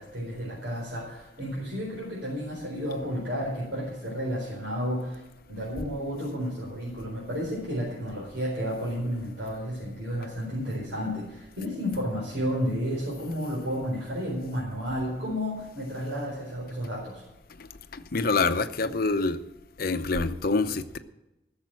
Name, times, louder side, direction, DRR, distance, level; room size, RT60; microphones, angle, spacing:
voice 1, 0.0-17.2, equal, 70° right, -5 dB, 4.4 m, -32 dB
voice 2, 17.9-19.4 19.8-21.0, left 3 dB, 50° left, 10 dB, 0.8 m, -26 dB
15.0 x 7.3 x 7.7 m, 0.92 s
head